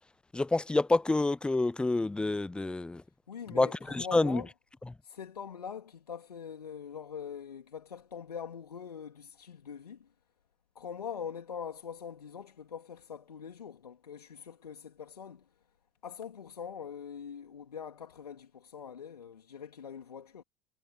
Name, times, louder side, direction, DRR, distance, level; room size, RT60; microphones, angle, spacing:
voice 1, 0.3-3.0 3.5-4.4, left 2 dB, 5° left, 0.3 m, -28 dB
voice 2, 3.3-4.5 5.0-10.1 10.7-15.5 16.0-20.4, left 7 dB, 80° left, 2.4 m, -43 dB
figure-of-eight pair, 75°, 20 cm